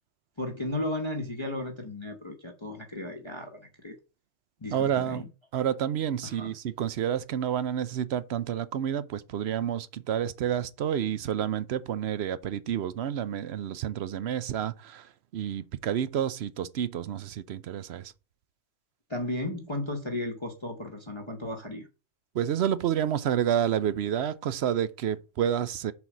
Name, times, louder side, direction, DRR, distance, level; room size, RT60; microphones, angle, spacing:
voice 1, 0.4-4.0 4.6-5.3 6.2-6.5 19.1-21.9, left 1 dB, 25° left, 0.9 m, -35 dB
voice 2, 4.7-5.2 5.5-18.1 22.3-25.9, right 9 dB, 65° right, 0.8 m, -29 dB
7.0 x 4.0 x 6.1 m
omnidirectional pair, 1.3 m